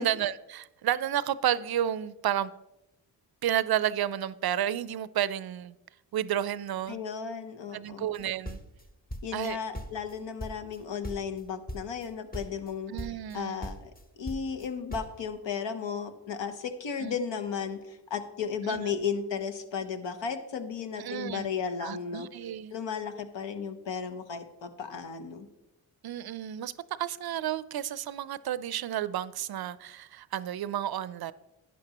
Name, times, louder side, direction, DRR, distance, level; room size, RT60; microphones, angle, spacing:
voice 1, 0.0-2.5 3.4-5.8 6.1-7.0 7.7-8.6 9.3-9.6 12.9-13.6 17.0-17.2 18.7-18.8 21.0-21.5 21.8-22.7 26.0-26.7 27.0-31.3, right 11 dB, 55° right, 0.5 m, -31 dB
voice 2, 6.9-8.1 9.2-12.9 13.3-13.9 14.2-22.3 22.7-25.5, left 6 dB, 70° left, 1.1 m, -34 dB
sound 1, 8.1-9.5 9.7-10.8 11.0-11.4 11.7-12.1 12.3-12.7 13.0-13.4 13.6-15.2, equal, 20° left, 1.0 m, -39 dB
11.5 x 9.5 x 2.9 m
cardioid pair, 55°, 45 cm